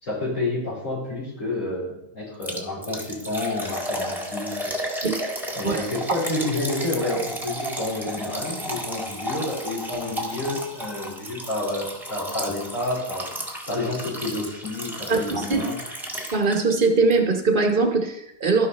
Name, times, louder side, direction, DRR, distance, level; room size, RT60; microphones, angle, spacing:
voice 1, 0.0-5.1 5.5-13.3 13.7-15.8, left 2 dB, 70° left, -6 dB, 4.8 m, -29 dB
Liquid, 2.4-16.8 17.1-17.2 17.7-17.8, equal, ahead, 1.4 m, -33 dB
voice 2, 15.1-15.6 16.3-18.7, right 3 dB, 40° right, 4 dB, 1.2 m, -21 dB
13.0 x 5.8 x 4.1 m, 0.82 s
omnidirectional pair, 1.4 m